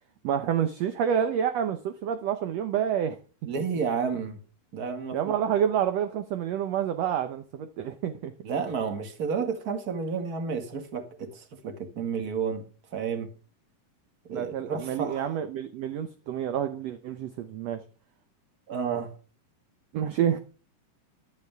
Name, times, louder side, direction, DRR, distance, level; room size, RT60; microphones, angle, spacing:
voice 1, 0.2-3.2 5.1-8.3 14.3-17.8 19.9-20.4, right 9 dB, 70° right, 1.6 m, -28 dB
voice 2, 3.4-4.4 4.7-5.2 8.4-12.7 12.9-13.3 14.3-15.4 18.7-19.1, right 6 dB, 35° right, 1.9 m, -31 dB
15.0 x 11.5 x 3.5 m
omnidirectional pair, 3.9 m